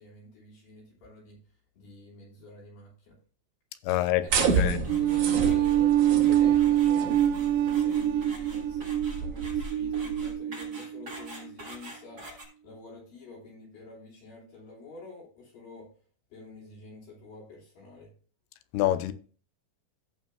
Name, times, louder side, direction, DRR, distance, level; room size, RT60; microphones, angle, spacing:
voice 1, 0.0-1.4 1.7-3.2 4.2-12.3 12.6-15.9 16.3-18.1, left 3 dB, 65° left, 4.6 m, -48 dB
voice 2, 3.8-4.3 4.6-4.9 18.7-19.1, left 14 dB, 90° left, 2.7 m, -26 dB
sound 1, 4.3-12.5, right 1 dB, 30° right, 5.7 m, -47 dB
sound 2, 4.3-10.3, right 5 dB, 65° right, 2.4 m, -31 dB
sound 3, 4.9-11.3, right 11 dB, 80° right, 2.3 m, -25 dB
17.0 x 5.7 x 2.2 m
omnidirectional pair, 4.4 m